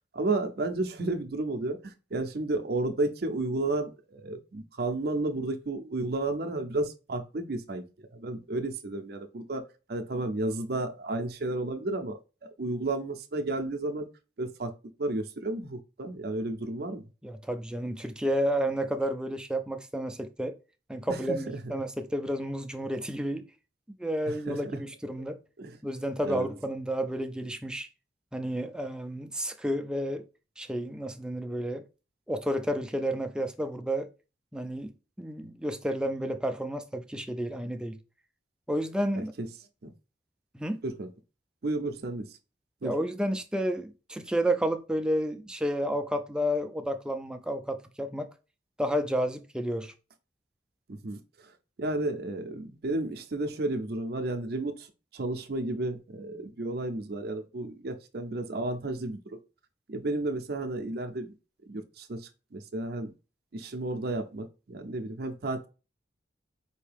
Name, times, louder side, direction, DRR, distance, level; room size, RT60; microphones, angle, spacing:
voice 1, 0.1-7.8 8.1-9.6 9.9-14.1 14.4-14.7 15.0-17.0 21.1-21.2 24.3-24.6 25.6-25.8 26.2-26.5 39.1-39.5 39.8-39.9 40.8-41.1 41.6-42.3 42.8-42.9 50.9-51.5 51.8-54.9 55.1-59.4 59.9-61.3 61.7-63.1 63.5-65.7, right 2 dB, 55° right, 0.5 m, -32 dB
voice 2, 17.2-20.6 20.9-23.4 24.0-25.4 25.8-27.9 28.3-30.2 30.6-31.8 32.3-34.1 34.5-34.9 35.2-38.0 38.7-39.3 40.5-40.8 42.8-48.3 48.8-49.9, equal, 5° right, 0.3 m, -31 dB
4.5 x 2.8 x 3.3 m
head